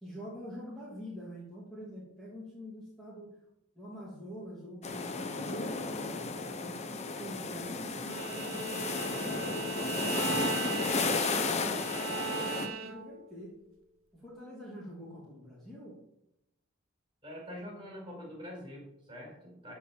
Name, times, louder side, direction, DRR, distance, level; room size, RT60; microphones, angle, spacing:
voice 1, 0.0-3.3 3.7-6.8 7.1-13.5 14.1-16.0, equal, ahead, -6 dB, 2.8 m, -45 dB
sound 1, 4.8-12.7, left 3 dB, 35° left, 1.0 m, -33 dB
Bowed string instrument, 8.1-13.2, right 5 dB, 80° right, 1.6 m, -38 dB
voice 2, 17.2-19.7, equal, 25° right, -1 dB, 5.0 m, -45 dB
14.5 x 4.9 x 7.6 m, 0.83 s
head